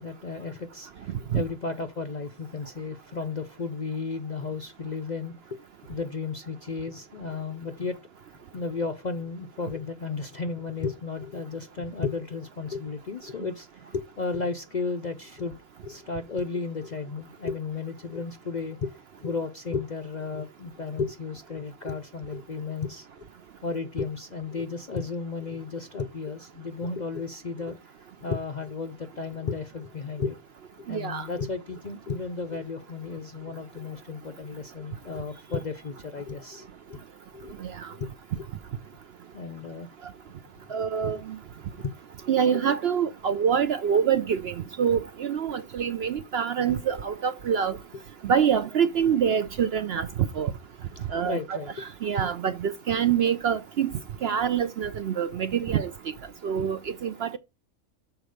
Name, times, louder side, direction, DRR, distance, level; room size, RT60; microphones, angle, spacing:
voice 1, 0.0-5.6 5.9-8.0 8.5-15.5 15.8-18.9 19.2-23.3 23.6-27.8 28.2-30.4 30.8-37.0 37.3-37.6 37.9-38.1 38.4-38.5 39.3-39.9 40.8-40.9 41.1-41.2 41.8-41.9 51.2-51.7, left 4 dB, 50° left, 0.5 m, -34 dB
voice 2, 30.9-31.3 37.6-37.9 40.7-41.4 42.3-47.8 48.2-50.1 50.4-50.5 51.1-53.9 54.2-55.9 56.4-57.4, right 8 dB, 60° right, 0.7 m, -26 dB
6.9 x 4.4 x 6.4 m
omnidirectional pair, 1.4 m